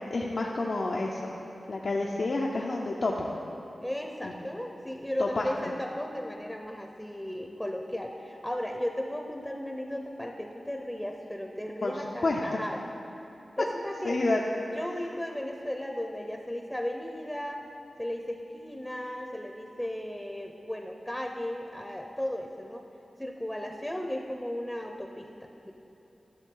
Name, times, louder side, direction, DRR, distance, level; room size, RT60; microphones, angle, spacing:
voice 1, 0.1-1.3 1.7-3.3 4.2-4.3 5.2-5.7 11.8-11.9 12.2-12.6 14.0-14.5, left 2 dB, 65° left, -2 dB, 0.6 m, -29 dB
voice 2, 3.8-12.8 13.6-14.3 14.7-17.6 18.0-22.8 23.2-25.7, left 1 dB, 10° left, 3 dB, 0.7 m, -35 dB
13.0 x 7.1 x 3.8 m, 3.0 s
cardioid pair, 50°, 0 cm